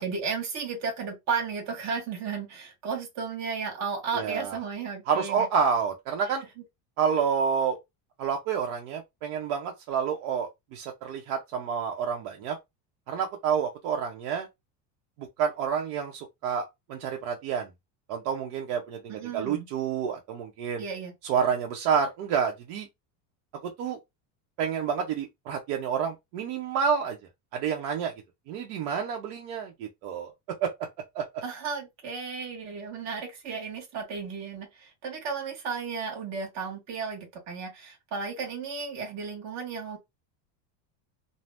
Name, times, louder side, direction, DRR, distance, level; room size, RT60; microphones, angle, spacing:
voice 1, 0.0-5.5 19.1-19.7 20.8-21.1 31.4-40.0, right 5 dB, 35° right, 1.1 m, -34 dB
voice 2, 4.1-4.6 5.1-6.5 7.0-7.8 8.2-12.6 13.1-14.5 15.2-17.7 18.1-20.8 21.2-22.9 23.6-24.0 24.6-27.2 27.5-28.1 28.5-30.3 30.6-30.7 31.1-31.2, right 7 dB, 70° right, 0.8 m, -29 dB
2.7 x 2.0 x 3.3 m
cardioid pair, 160°, 45 cm